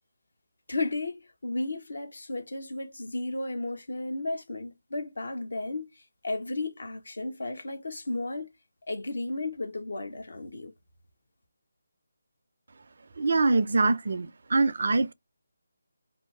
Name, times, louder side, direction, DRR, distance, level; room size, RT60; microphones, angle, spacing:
voice 1, 0.7-8.5 8.9-10.7, left 2 dB, 60° left, 0.9 m, -34 dB
voice 2, 13.2-15.1, right 3 dB, 50° right, 0.4 m, -24 dB
2.7 x 2.7 x 4.4 m
figure-of-eight pair, 155°, 0 cm